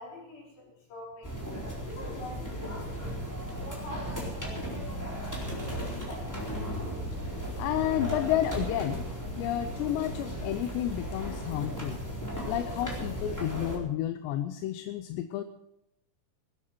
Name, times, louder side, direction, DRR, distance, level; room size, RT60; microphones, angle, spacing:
voice 1, 0.0-1.4 1.8-5.2 5.5-6.4, left 2 dB, 55° left, -3 dB, 6.4 m, -45 dB
sound 1, 1.2-13.8, equal, 5° left, 3.3 m, -36 dB
voice 2, 7.6-9.1 9.4-12.0 12.5-15.4, left 12 dB, 80° left, 9 dB, 2.8 m, -31 dB
19.0 x 12.5 x 4.5 m, 0.82 s
omnidirectional pair, 5.2 m